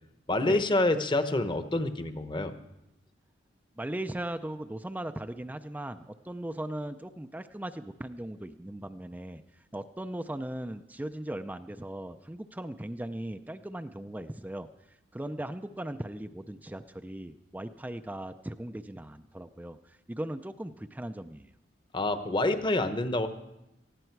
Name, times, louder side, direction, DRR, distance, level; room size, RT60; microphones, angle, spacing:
voice 1, 0.3-2.5 21.9-23.3, left 2 dB, 25° left, 9 dB, 0.9 m, -27 dB
voice 2, 3.8-9.4 9.7-14.7 15.1-21.5, right 1 dB, 10° right, 8 dB, 0.4 m, -38 dB
19.0 x 14.5 x 4.6 m, 0.90 s
head